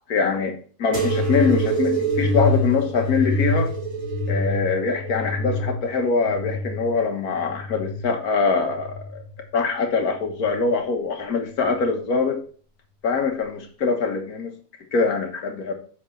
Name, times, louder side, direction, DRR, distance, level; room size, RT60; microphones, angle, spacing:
voice 1, 0.1-0.5 0.8-3.7 4.3-9.2 9.5-12.4 13.0-14.5 14.9-15.7, left 4 dB, 70° left, 1.8 m, -23 dB
sound 1, 0.9-8.1 8.7-9.4 10.2-10.7 11.7-11.8, equal, 45° right, 2.5 m, -26 dB
7.9 x 6.2 x 3.3 m
omnidirectional pair, 1.7 m